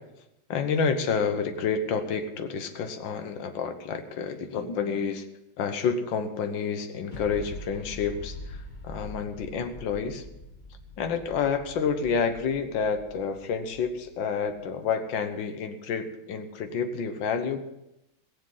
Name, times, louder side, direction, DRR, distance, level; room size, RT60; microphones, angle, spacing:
voice 1, 0.5-5.3 5.6-10.2 11.0-17.6, left 6 dB, 75° left, 7 dB, 1.8 m, -29 dB
sound 1, 7.1-14.6, left 1 dB, 25° left, 1.6 m, -44 dB
20.5 x 7.7 x 5.8 m, 0.88 s
omnidirectional pair, 2.1 m